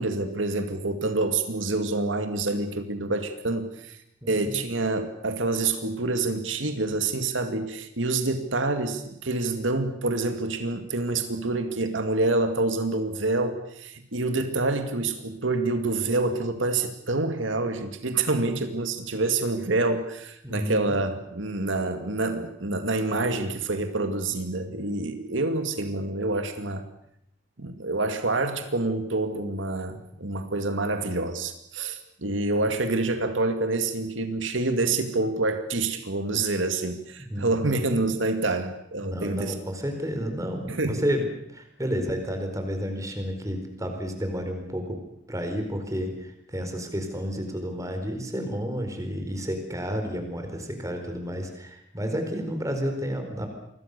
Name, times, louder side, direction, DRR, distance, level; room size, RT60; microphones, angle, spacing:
voice 1, 0.0-4.0 4.3-26.8 27.6-39.5 40.7-41.0, right 2 dB, 85° right, 7 dB, 2.3 m, -27 dB
voice 2, 4.2-4.5 20.4-20.9 37.3-37.7 39.0-45.0 45.3-53.5, equal, 15° right, 5 dB, 4.5 m, -31 dB
27.5 x 22.5 x 6.8 m, 0.75 s
head